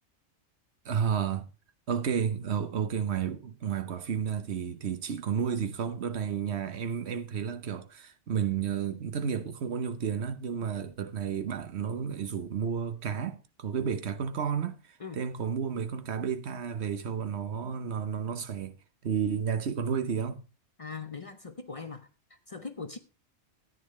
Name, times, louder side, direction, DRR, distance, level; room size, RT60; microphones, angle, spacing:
voice 1, 0.8-1.5 1.9-18.7 19.0-20.4, right 7 dB, 65° right, 1.2 m, -32 dB
voice 2, 20.8-23.0, left 4 dB, 35° left, 0.7 m, -41 dB
14.0 x 9.5 x 3.2 m
omnidirectional pair, 1.2 m